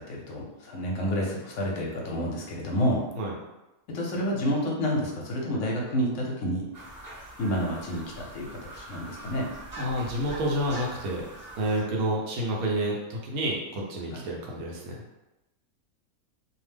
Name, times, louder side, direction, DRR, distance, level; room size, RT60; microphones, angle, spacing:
voice 1, 0.0-3.0 3.9-6.6 7.4-9.5 14.1-14.2, equal, 65° left, -3 dB, 0.9 m, -29 dB
sound 1, 6.7-11.8, right 1 dB, 20° right, 0.5 m, -43 dB
voice 2, 9.8-11.3 11.6-15.0, right 1 dB, 75° right, -2 dB, 1.1 m, -29 dB
2.7 x 2.1 x 3.3 m, 1.0 s
omnidirectional pair, 1.6 m